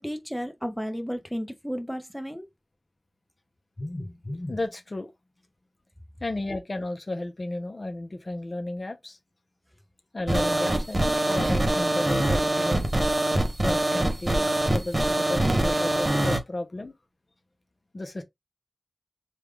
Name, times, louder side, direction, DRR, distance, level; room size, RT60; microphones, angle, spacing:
voice 1, 0.0-2.5, equal, 5° left, 0.8 m, -33 dB
voice 2, 3.8-5.1 6.2-9.2 10.1-12.9 13.6-16.9 17.9-18.2, left 2 dB, 45° left, 0.6 m, -33 dB
sound 1, 10.3-16.4, right 1 dB, 35° right, 0.8 m, -24 dB
3.4 x 2.3 x 3.2 m
cardioid pair, 45°, 0 cm